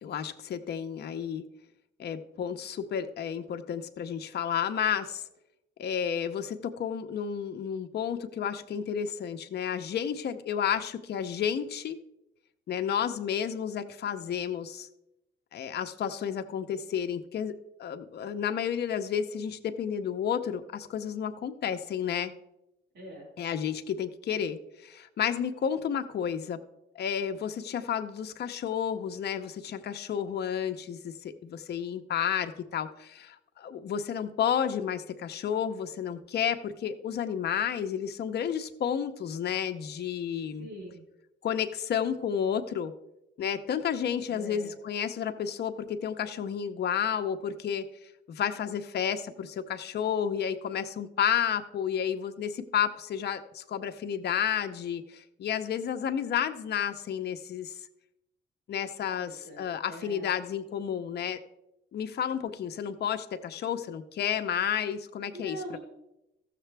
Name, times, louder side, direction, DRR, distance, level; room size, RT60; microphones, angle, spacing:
voice 1, 0.0-1.4 2.0-5.2 5.8-12.0 12.7-14.9 15.5-17.5 17.8-22.3 23.4-26.6 27.0-40.7 41.4-42.9 43.4-47.9 48.3-57.7 58.7-61.4 61.9-65.6, left 8 dB, 55° left, 7 dB, 0.7 m, -31 dB
voice 2, 22.9-23.3 24.3-24.5 40.6-41.0 44.3-44.8 59.2-60.3 65.3-65.8, equal, 65° right, -3 dB, 4.1 m, -43 dB
14.5 x 6.7 x 3.4 m, 0.88 s
cardioid pair, 90°, 20 cm